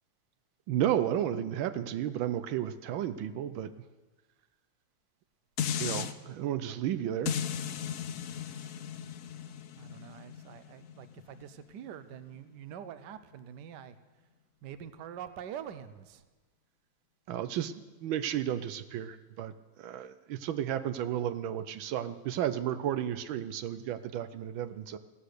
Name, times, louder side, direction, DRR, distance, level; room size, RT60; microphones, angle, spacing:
voice 1, 0.7-3.7 5.8-7.4 17.3-17.7 18.0-19.5 19.8-25.0, right 10 dB, 85° right, 11 dB, 1.5 m, -32 dB
sound 1, 5.6-6.1 7.3-12.4 12.9-13.0, left 8 dB, 65° left, 0.8 m, -37 dB
voice 2, 9.7-13.9 14.6-16.2, right 9 dB, 65° right, 12 dB, 1.4 m, -45 dB
17.0 x 13.0 x 6.7 m, 1.2 s
omnidirectional pair, 2.1 m